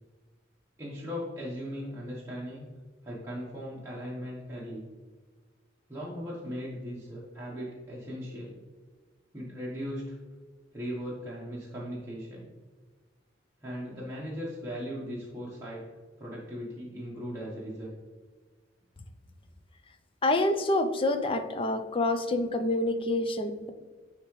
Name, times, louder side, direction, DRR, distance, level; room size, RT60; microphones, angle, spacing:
voice 1, 0.8-2.6 3.0-4.8 5.9-8.5 9.3-10.2 10.7-12.5 13.6-15.8 16.2-18.0, equal, 15° right, -7 dB, 1.1 m, -38 dB
voice 2, 20.2-23.7, left 2 dB, 30° left, 8 dB, 0.5 m, -27 dB
9.9 x 3.6 x 3.1 m, 1.4 s
head